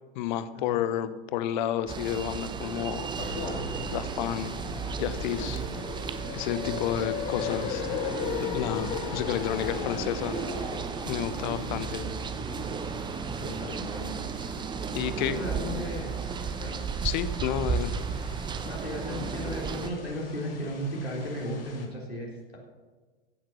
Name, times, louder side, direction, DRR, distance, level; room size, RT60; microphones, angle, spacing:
voice 1, 0.1-3.1 3.9-4.5 5.0-5.6 6.3-8.0 8.4-10.4 11.1-12.0 14.9-15.4 17.0-17.9, left 11 dB, 50° left, 13 dB, 1.0 m, -31 dB
sound 1, 1.9-19.9, right 6 dB, 15° right, 0.7 m, -34 dB
sound 2, 3.2-21.9, left 3 dB, 65° left, 2.9 m, -44 dB
sound 3, 4.3-10.9, left 12 dB, 20° left, 0.3 m, -36 dB
voice 2, 6.5-7.0 11.4-12.2 13.3-14.2 15.1-16.2 16.6-16.8 18.6-22.6, equal, 90° left, -3 dB, 3.6 m, -36 dB
16.0 x 7.6 x 6.1 m, 1.4 s
figure-of-eight pair, 95°, 30 cm